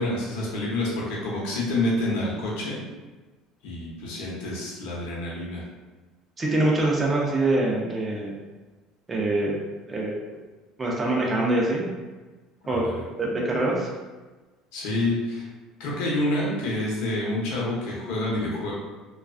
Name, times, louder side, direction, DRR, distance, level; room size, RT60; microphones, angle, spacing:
voice 1, 0.0-2.8 3.6-5.6 12.7-13.0 14.7-15.5 15.8-18.7, left 1 dB, 80° left, -4 dB, 0.8 m, -28 dB
voice 2, 6.4-8.3 9.1-9.6 9.9-10.1 10.8-11.9 12.7-13.9, right 2 dB, 20° right, -2 dB, 0.4 m, -24 dB
2.3 x 2.3 x 2.3 m, 1.2 s
cardioid pair, 130°, 0 cm